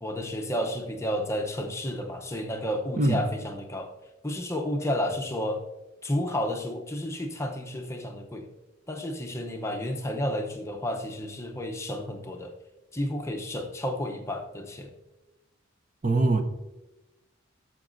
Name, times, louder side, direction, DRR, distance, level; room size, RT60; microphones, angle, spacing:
voice 1, 0.0-3.9 4.2-5.6 6.0-8.5 8.9-12.5 12.9-14.9, left 1 dB, 15° left, 0.7 m, -31 dB
voice 2, 3.0-3.3 16.0-16.4, right 2 dB, 40° right, 0.6 m, -22 dB
13.5 x 5.8 x 2.6 m
head